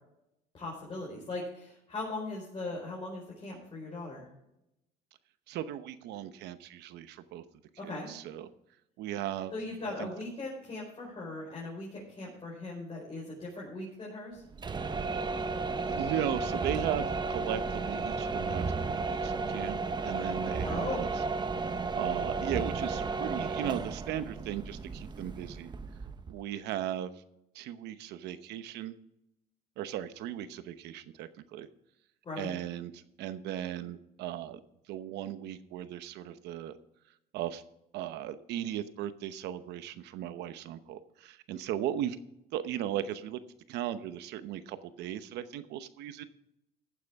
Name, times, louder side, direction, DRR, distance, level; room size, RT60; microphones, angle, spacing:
voice 1, 0.5-4.3 7.8-8.1 9.5-14.4 20.6-21.1 32.2-32.5, left 2 dB, 30° left, -5 dB, 4.9 m, -39 dB
voice 2, 5.5-7.4 7.8-8.5 9.0-9.5 9.8-10.1 15.9-19.8 20.0-21.2 21.9-25.7 26.3-27.1 27.5-28.9 29.8-31.7 32.4-34.6 34.9-36.7 37.3-37.6 37.9-42.2 42.5-43.4 43.7-46.2, right 11 dB, 85° right, 12 dB, 0.9 m, -37 dB
sound 1, 14.5-26.4, right 4 dB, 25° right, 0.9 m, -33 dB
14.5 x 9.5 x 3.6 m, 0.83 s
cardioid pair, 110°, 17 cm